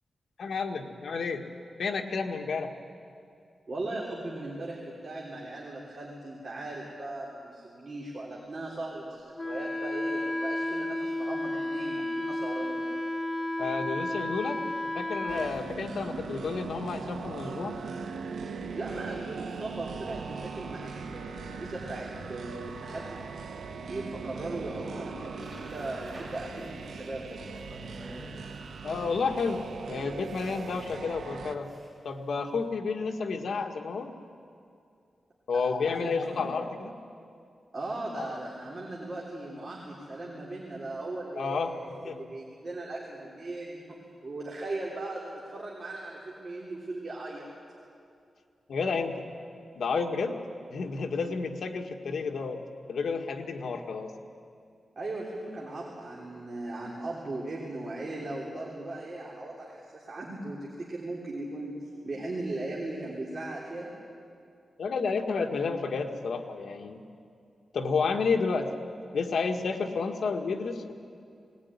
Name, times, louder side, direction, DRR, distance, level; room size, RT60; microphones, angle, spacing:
voice 1, 0.4-1.4 1.8-2.7 13.6-14.6 14.9-17.7 28.8-31.7 32.0-34.1 35.5-36.9 38.2-38.4 41.4-42.2 48.7-49.3 49.8-50.4 50.7-52.6 52.9-54.1 64.8-67.0 67.7-68.7 69.1-70.9, left 4 dB, 70° left, 3 dB, 1.7 m, -31 dB
voice 2, 3.7-12.9 18.8-23.2 23.9-27.6 35.5-35.6 36.0-36.3 37.7-47.5 55.0-63.9, right 2 dB, 40° right, -4 dB, 3.4 m, -38 dB
Wind instrument woodwind instrument, 9.4-15.5, left 1 dB, 10° left, 1.4 m, -32 dB
sound 1, 15.3-31.6, right 5 dB, 85° right, 1.2 m, -40 dB
sound 2, 25.4-32.6, equal, 15° right, 7.5 m, -51 dB
20.0 x 19.0 x 9.7 m, 2.4 s
wide cardioid pair, 150°, 0 cm